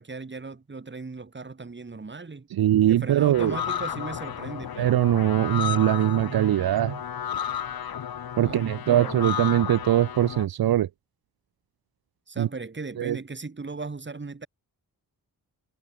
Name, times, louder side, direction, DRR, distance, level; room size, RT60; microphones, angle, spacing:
voice 1, 0.0-2.5 2.9-5.0 8.4-9.2 12.3-14.5, right 3 dB, 30° right, 7.4 m, -37 dB
voice 2, 2.5-3.5 4.8-7.0 8.4-10.9 12.4-12.5 13.0-13.2, right 12 dB, 85° right, 0.7 m, -22 dB
sound 1, 3.3-10.5, left 8 dB, 80° left, 2.0 m, -33 dB
wide cardioid pair, 145°, 35 cm